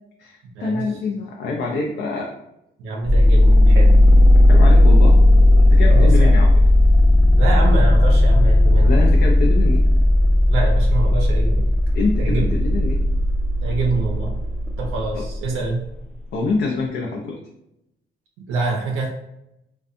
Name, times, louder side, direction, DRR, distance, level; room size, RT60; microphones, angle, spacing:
voice 1, 0.2-2.3 4.5-5.2 5.6-6.5 8.8-9.8 11.9-13.0 15.1-15.2 16.3-17.4, left 3 dB, 65° left, -1 dB, 0.4 m, -25 dB
voice 2, 2.8-4.0 5.9-6.4 7.3-8.9 10.5-11.7 12.2-12.5 13.6-14.3 14.8-15.8 18.5-19.1, right 3 dB, 90° right, 0 dB, 0.5 m, -26 dB
sound 1, 3.0-15.7, left 1 dB, 5° left, 0.5 m, -14 dB
2.6 x 2.2 x 2.5 m, 0.84 s
cardioid pair, 90°, 20 cm